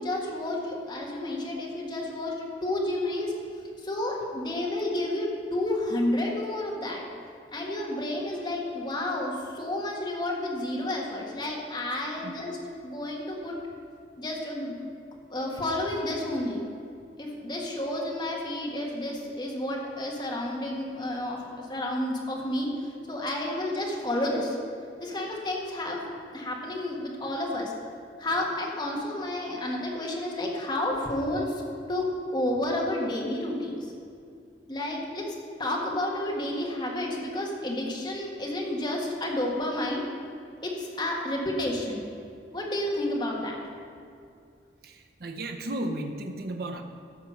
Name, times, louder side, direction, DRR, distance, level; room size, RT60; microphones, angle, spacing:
voice 1, 0.0-3.3 3.8-7.0 7.5-12.6 12.8-13.5 14.2-14.8 15.3-16.6 17.2-22.7 23.1-24.6 25.0-26.1 26.3-27.7 28.2-31.6 31.9-33.9 34.7-40.0 40.6-42.0 42.5-43.6, left 1 dB, 25° left, -2 dB, 1.7 m, -30 dB
voice 2, 44.8-46.8, right 1 dB, 55° right, 4 dB, 0.7 m, -34 dB
14.0 x 5.9 x 5.8 m, 2.4 s
head